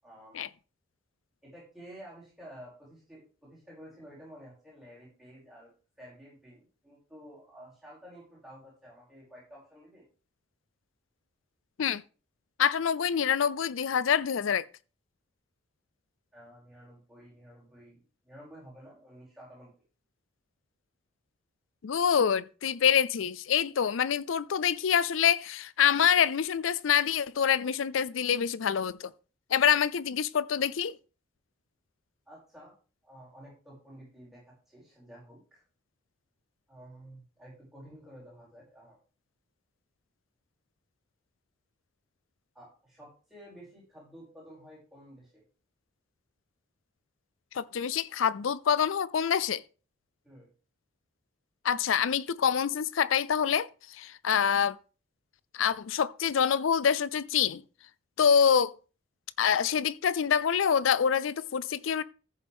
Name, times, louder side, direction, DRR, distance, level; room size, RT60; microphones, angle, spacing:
voice 1, 0.0-0.4 1.4-10.0 16.3-19.7 32.3-32.7 33.0-35.6 36.7-39.0 42.5-45.4 50.2-50.5, equal, ahead, 6.4 m, -51 dB
voice 2, 12.6-14.6 21.8-29.1 29.5-31.0 47.5-49.6 51.6-54.8 55.5-57.6 58.2-58.7 59.4-62.0, left 8 dB, 80° left, 0.5 m, -26 dB
14.5 x 7.2 x 3.6 m
head